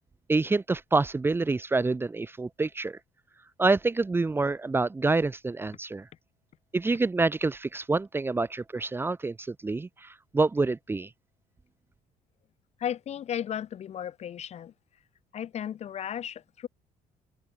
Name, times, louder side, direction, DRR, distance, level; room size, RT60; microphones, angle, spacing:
voice 1, 0.3-3.0 3.6-6.0 6.7-10.1 10.3-11.1, right 3 dB, 15° right, 1.6 m, -27 dB
voice 2, 12.8-14.7 15.3-16.7, left 10 dB, 50° left, 3.3 m, -34 dB
cardioid pair, 150°, 15 cm